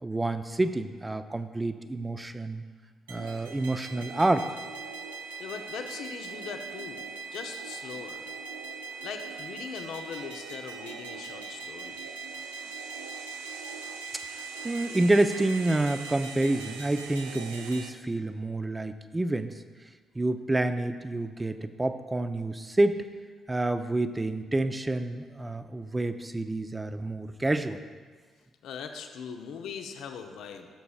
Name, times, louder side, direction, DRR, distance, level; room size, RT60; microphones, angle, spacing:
voice 1, 0.0-2.6 3.1-4.5 14.6-19.5 20.2-23.0 23.5-27.8, right 2 dB, 20° right, 9 dB, 0.7 m, -28 dB
sound 1, 3.1-17.9, right 5 dB, 85° right, 0.5 m, -40 dB
voice 2, 5.4-8.3 9.0-12.0 28.6-30.7, left 7 dB, 70° left, 6 dB, 0.7 m, -40 dB
16.0 x 6.8 x 2.4 m, 1.5 s
hypercardioid pair, 45°, 0 cm